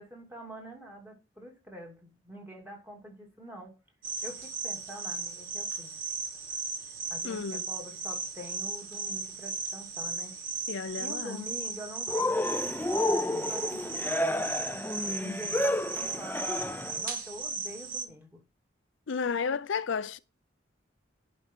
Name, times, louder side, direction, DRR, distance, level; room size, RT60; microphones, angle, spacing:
voice 1, 0.0-3.8 4.2-6.0 7.1-10.4 11.0-18.4, equal, 10° right, 2.7 m, -46 dB
sound 1, 4.0-18.0, right 4 dB, 45° right, 1.5 m, -36 dB
voice 2, 7.2-7.7 10.7-11.4 19.1-20.2, left 5 dB, 85° left, 0.5 m, -32 dB
Cheering, 12.1-17.0, left 1 dB, 10° left, 0.4 m, -30 dB
10.5 x 5.2 x 4.6 m
head